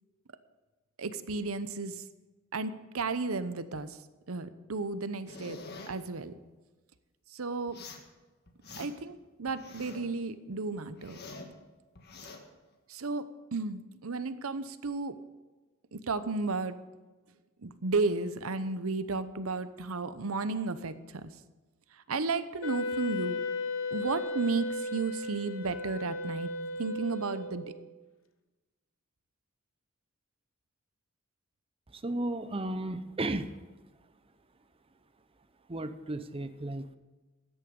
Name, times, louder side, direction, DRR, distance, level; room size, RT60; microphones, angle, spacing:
voice 1, 1.0-2.0 2.5-4.0 4.3-5.6 5.9-6.3 7.3-7.8 8.8-11.2 12.9-13.3 13.5-15.2 15.9-16.8 17.6-21.3 21.9-23.4 23.9-26.5 26.8-27.7, right 3 dB, 80° right, 13 dB, 0.8 m, -33 dB
sound 1, 5.3-5.9 7.7-8.1 8.5-9.1 9.5-10.1 10.5-11.5 12.0-12.4, left 3 dB, 50° left, 1.6 m, -46 dB
Wind instrument woodwind instrument, 22.6-27.8, left 2 dB, 65° left, 1.0 m, -35 dB
voice 2, 31.9-33.6 35.7-37.0, right 1 dB, 25° right, 11 dB, 0.7 m, -34 dB
13.5 x 10.0 x 5.3 m, 1.2 s
head